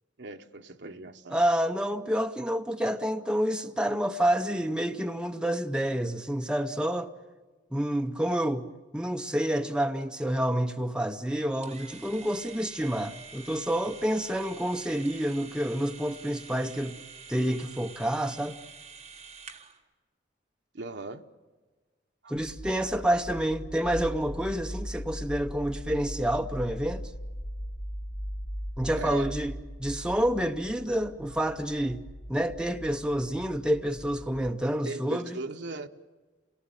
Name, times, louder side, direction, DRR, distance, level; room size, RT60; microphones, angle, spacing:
voice 1, 0.2-1.4 20.7-21.2 22.2-22.3 29.0-29.3 34.8-35.9, right 3 dB, 65° right, 1.0 m, -38 dB
voice 2, 1.3-7.1 7.7-8.7 8.9-17.0 17.3-18.6 22.3-27.0 28.8-29.5 29.8-32.0 32.3-35.4, right 1 dB, 5° right, 0.7 m, -28 dB
sound 1, 11.6-19.8, right 5 dB, 35° right, 1.5 m, -47 dB
sound 2, 22.3-34.5, equal, 70° left, 1.5 m, -39 dB
28.0 x 18.5 x 9.0 m
head